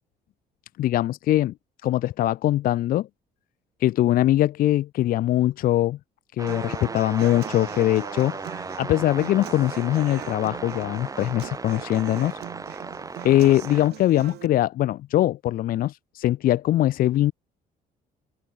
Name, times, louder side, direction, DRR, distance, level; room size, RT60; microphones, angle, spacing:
voice 1, 0.8-1.5 1.8-3.1 3.8-6.0 6.4-8.4 8.8-12.4 13.2-17.3, left 14 dB, 60° left, 0.5 m, -22 dB
sound 1, 6.4-13.9, right 3 dB, 20° right, 3.1 m, -36 dB
Human voice / Acoustic guitar, 6.5-14.5, right 15 dB, 75° right, 5.7 m, -42 dB
open air
cardioid pair, 110°, 17 cm